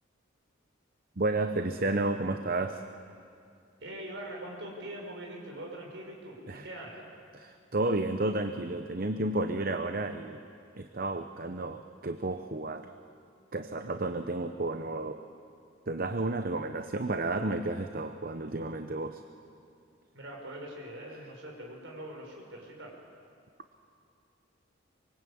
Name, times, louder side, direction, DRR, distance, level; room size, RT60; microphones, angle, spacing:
voice 1, 1.2-2.8 6.5-6.7 7.3-10.4 10.8-12.9 13.5-15.2 15.9-19.2, right 2 dB, 45° right, 8 dB, 0.8 m, -32 dB
voice 2, 3.8-7.1 20.1-23.0, right 1 dB, 65° right, 0 dB, 5.8 m, -43 dB
25.0 x 23.5 x 8.7 m, 2.4 s
head